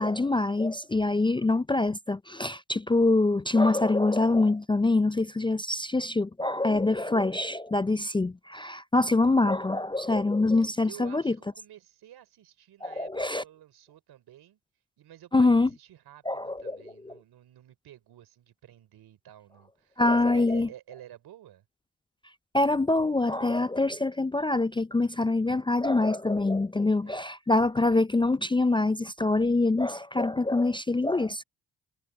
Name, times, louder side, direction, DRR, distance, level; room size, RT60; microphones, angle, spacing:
voice 1, 0.0-11.3 12.8-13.4 15.3-15.7 16.3-16.8 20.0-20.7 22.5-31.4, left 2 dB, 15° left, 0.4 m, -25 dB
voice 2, 10.6-14.6 15.0-21.6 27.0-27.3, right 12 dB, 80° right, 4.2 m, -51 dB
supercardioid pair, 55°, 38 cm